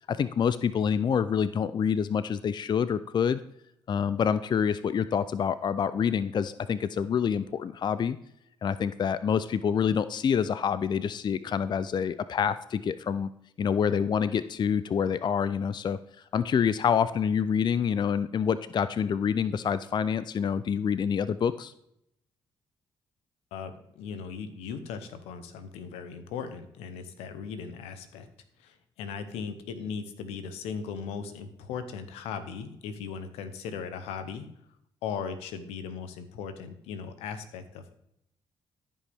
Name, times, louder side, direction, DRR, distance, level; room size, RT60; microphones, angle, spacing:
voice 1, 0.0-3.4 3.9-8.2 8.6-13.3 13.6-16.0 16.3-21.7, left 7 dB, 45° left, 14 dB, 0.4 m, -27 dB
voice 2, 23.5-28.3 28.6-34.5 35.0-37.9, left 6 dB, 85° left, 10 dB, 0.9 m, -38 dB
14.0 x 5.4 x 3.5 m, 0.76 s
supercardioid pair, 55°, 10 cm